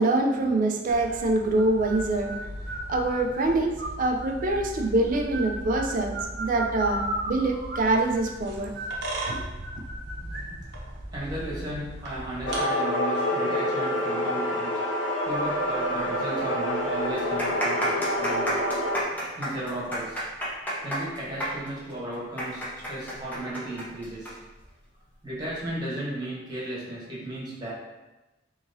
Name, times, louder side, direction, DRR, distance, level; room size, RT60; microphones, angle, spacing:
voice 1, 0.0-2.4 2.9-8.7 9.3-9.4, right 2 dB, 45° right, 3 dB, 0.4 m, -25 dB
sound 1, 0.9-12.6, right 1 dB, 60° right, 0.8 m, -36 dB
voice 2, 11.1-14.8 15.3-18.7 19.4-20.2 20.8-24.4 25.2-27.7, right 1 dB, 20° right, -7 dB, 1.2 m, -35 dB
sound 2, 12.4-19.0, left 1 dB, 70° left, 0.7 m, -27 dB
sound 3, 16.0-16.1 16.3-16.4 17.1-24.3 24.6-24.7 25.5-25.7, right 1 dB, 10° left, 0.8 m, -31 dB
3.8 x 2.9 x 2.6 m, 1.1 s
head